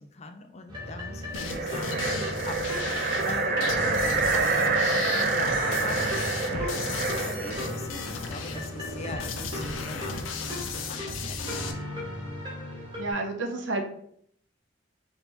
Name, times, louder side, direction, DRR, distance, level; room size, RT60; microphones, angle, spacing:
voice 1, 0.0-11.6, left 3 dB, 35° left, 6 dB, 0.4 m, -41 dB
sound 1, 0.7-13.1, left 1 dB, 25° right, 1.1 m, -37 dB
sound 2, 1.3-11.7, left 5 dB, 85° left, 0.5 m, -36 dB
sound 3, 1.3-7.8, right 4 dB, 50° right, 0.5 m, -27 dB
voice 2, 13.0-13.8, right 2 dB, 80° right, 4 dB, 0.7 m, -31 dB
3.4 x 2.7 x 4.3 m, 0.65 s
head